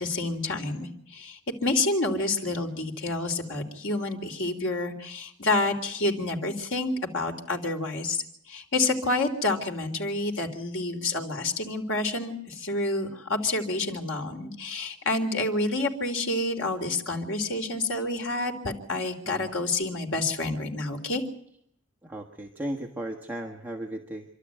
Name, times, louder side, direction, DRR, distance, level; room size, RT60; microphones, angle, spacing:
voice 1, 0.0-21.2, left 2 dB, 75° left, 3 dB, 3.6 m, -28 dB
voice 2, 22.0-24.2, right 1 dB, 10° right, 0 dB, 1.6 m, -36 dB
27.5 x 12.5 x 9.2 m, 0.70 s
head